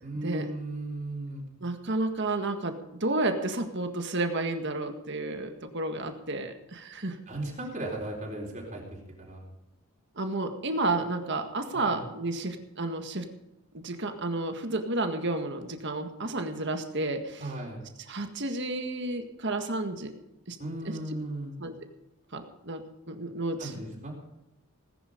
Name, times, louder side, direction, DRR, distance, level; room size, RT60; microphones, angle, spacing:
voice 1, 0.0-1.4 7.3-8.8 9.2-9.4 11.7-12.0 17.4-17.8 20.6-21.5 23.6-24.1, right 1 dB, 35° right, -1 dB, 4.2 m, -36 dB
voice 2, 1.6-7.2 10.1-13.3 13.8-17.5 18.1-20.1 20.5-20.6 20.8-21.0 21.6-21.7 22.3-23.8, right 2 dB, 55° right, 6 dB, 1.8 m, -31 dB
19.5 x 10.0 x 5.2 m, 0.93 s
head